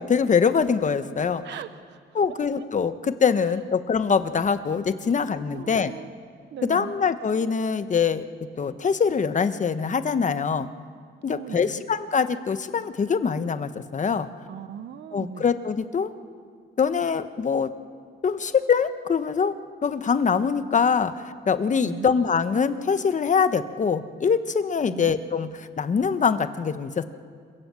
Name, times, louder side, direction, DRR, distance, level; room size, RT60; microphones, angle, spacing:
voice 1, 0.0-1.4 2.1-5.9 6.7-8.2 8.6-10.7 11.2-14.3 15.1-16.1 16.8-17.7 18.2-19.5 19.8-21.1 21.5-27.1, left 6 dB, 40° left, 11 dB, 1.2 m, -23 dB
voice 2, 1.4-2.0 2.6-2.7 3.4-3.6 5.5-6.1 6.5-7.0 11.3-11.8 14.5-15.4 21.8-22.1 24.9-25.2, right 9 dB, 60° right, 12 dB, 0.8 m, -39 dB
27.5 x 17.0 x 7.7 m, 2.1 s
cardioid pair, 90°, 20 cm